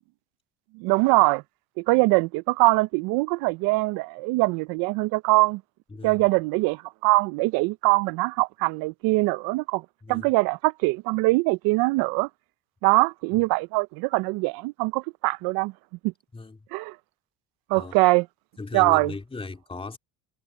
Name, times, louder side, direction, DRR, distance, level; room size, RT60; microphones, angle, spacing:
voice 1, 0.7-1.4 1.8-5.6 6.0-9.8 10.1-12.3 12.8-15.7 16.0-16.1 16.7-16.9 17.7-18.3 18.7-19.1, right 24 dB, 75° right, 0.7 m, -22 dB
voice 2, 5.9-6.2 10.0-10.3 16.3-16.6 17.7-18.0 18.6-20.0, left 3 dB, 15° left, 3.2 m, -37 dB
supercardioid pair, 100°, 37 cm